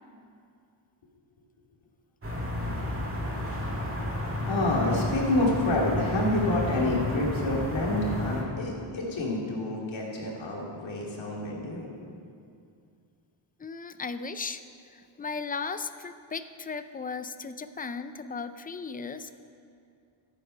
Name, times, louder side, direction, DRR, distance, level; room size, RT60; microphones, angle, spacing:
sound 1, 2.2-8.4, left 1 dB, 30° right, 1.8 m, -32 dB
voice 1, 4.5-11.9, left 1 dB, 70° left, -3 dB, 2.6 m, -28 dB
voice 2, 13.6-14.6 14.9-19.3, left 4 dB, 20° left, 11 dB, 0.3 m, -36 dB
13.5 x 8.2 x 5.6 m, 2.4 s
wide cardioid pair, 135°, 47 cm